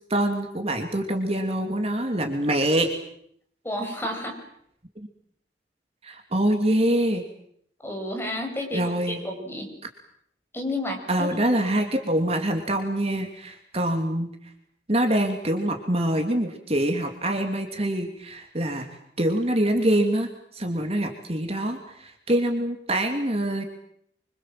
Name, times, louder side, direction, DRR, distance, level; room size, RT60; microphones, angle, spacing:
voice 1, 0.1-2.9 5.0-5.1 6.0-7.2 8.7-9.2 11.1-14.3 14.9-18.9 19.2-20.3 20.5-23.6, right 1 dB, 35° right, 4 dB, 2.9 m, -25 dB
voice 2, 3.6-4.4 7.8-9.7 10.5-11.3 11.6-11.7, left 1 dB, 15° left, 2 dB, 6.9 m, -31 dB
26.5 x 25.5 x 7.7 m, 0.70 s
head